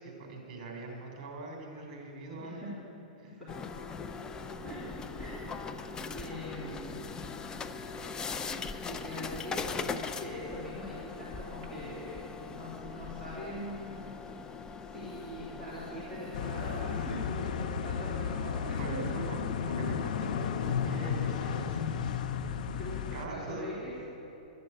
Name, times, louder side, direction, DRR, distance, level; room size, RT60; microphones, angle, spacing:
voice 1, 0.0-2.7 18.8-21.8 23.1-23.7, right 2 dB, 45° right, 0 dB, 3.6 m, -42 dB
voice 2, 2.3-2.7 3.2-3.5 4.6-4.8 5.2-5.5 6.1-6.9 8.9-9.6 10.2-14.1 14.9-19.0 20.9-21.2 22.6-24.0, equal, ahead, -12 dB, 3.3 m, -42 dB
sound 1, 3.5-17.4, left 4 dB, 15° left, 0.5 m, -40 dB
sound 2, 16.3-23.3, left 7 dB, 60° left, 0.7 m, -33 dB
12.0 x 7.8 x 8.8 m, 2.9 s
hypercardioid pair, 135°, 5 cm